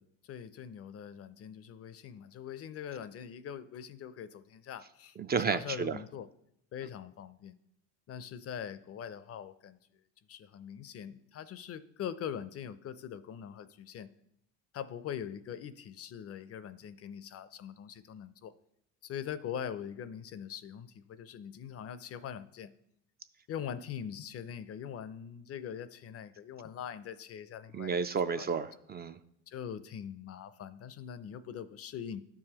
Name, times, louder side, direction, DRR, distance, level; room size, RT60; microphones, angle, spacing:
voice 1, 0.0-5.2 5.4-6.3 6.7-7.5 8.1-9.8 10.3-14.1 14.7-18.5 19.0-22.7 23.5-28.0 28.4-28.5 29.5-32.2, left 8 dB, 45° left, 15 dB, 0.5 m, -42 dB
voice 2, 5.2-6.0 27.7-29.2, right 5 dB, 30° right, 10 dB, 0.4 m, -32 dB
12.0 x 4.8 x 2.9 m, 0.75 s
supercardioid pair, 75°, 34 cm